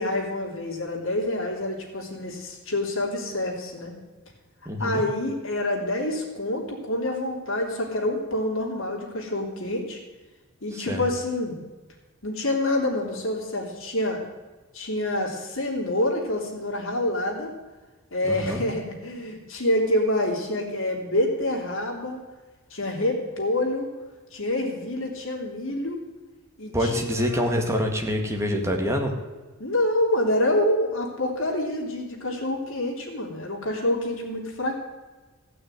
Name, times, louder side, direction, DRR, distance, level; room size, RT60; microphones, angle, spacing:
voice 1, 0.0-3.9 4.8-10.0 10.6-11.6 12.2-14.2 14.7-17.5 18.1-22.2 22.7-23.9 24.3-26.0 26.6-27.5 29.6-34.8, left 1 dB, 70° left, 0 dB, 3.2 m, -27 dB
voice 2, 4.7-5.0 10.7-11.0 18.3-18.6 26.7-29.1, equal, 15° right, 2 dB, 1.8 m, -26 dB
15.5 x 6.2 x 9.1 m, 1.3 s
head